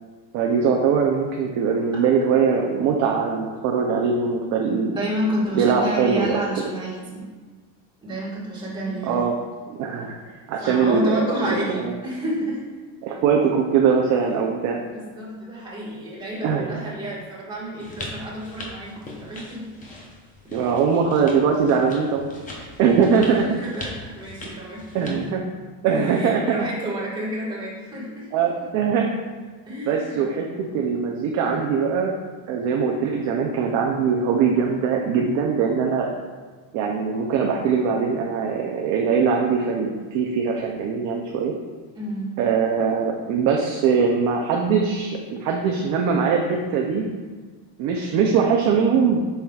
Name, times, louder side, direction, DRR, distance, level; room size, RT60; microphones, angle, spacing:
voice 1, 0.3-5.0 5.5-6.5 9.0-9.3 9.7-10.2 10.5-11.9 13.0-14.8 16.4-16.7 20.5-22.3 22.5-23.5 24.9-25.4 25.8-26.6 28.3-29.1 29.9-32.1 32.5-36.1 36.7-41.5 42.4-47.1 47.8-49.2, right 6 dB, 40° right, 1 dB, 0.4 m, -21 dB
voice 2, 4.7-7.3 8.0-9.2 10.6-12.6 14.9-19.9 20.4-20.7 23.2-25.0 25.9-28.4 29.7-30.2 41.9-42.3, right 1 dB, 10° right, -7 dB, 1.4 m, -30 dB
sound 1, 17.8-25.3, left 2 dB, 20° left, 0.6 m, -40 dB
7.4 x 5.7 x 2.3 m, 1.4 s
cardioid pair, 175°, 47 cm